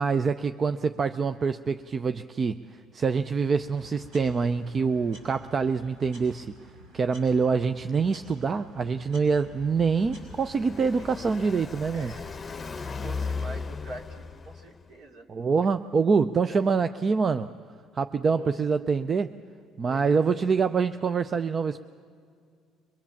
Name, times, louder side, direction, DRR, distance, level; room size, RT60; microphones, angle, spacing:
voice 1, 0.0-2.6 2.9-6.5 6.9-12.1 15.3-17.5 18.0-19.3 19.8-21.8, right 5 dB, 35° right, 10 dB, 0.5 m, -25 dB
sound 1, 3.5-10.7, equal, 80° right, 6.1 m, -51 dB
Car passing by, 9.3-14.9, left 4 dB, 25° left, 0.8 m, -37 dB
voice 2, 11.9-12.4 12.7-15.3 16.5-16.7 18.2-18.5 19.8-20.2, right 1 dB, 60° right, 1 dB, 2.6 m, -45 dB
23.5 x 21.5 x 7.2 m, 2.3 s
supercardioid pair, 90°, 0 cm